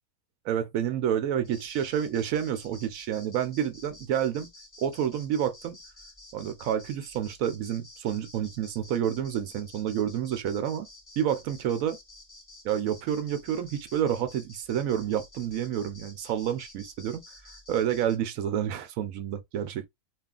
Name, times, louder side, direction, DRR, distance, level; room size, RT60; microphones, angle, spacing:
voice 1, 0.4-4.5 4.8-5.8 6.3-10.9 11.2-12.0 12.6-17.2 17.7-19.9, right 9 dB, 70° right, 0.9 m, -29 dB
sound 1, 1.4-18.2, left 1 dB, 25° left, 0.4 m, -51 dB
2.9 x 2.4 x 2.3 m
omnidirectional pair, 1.6 m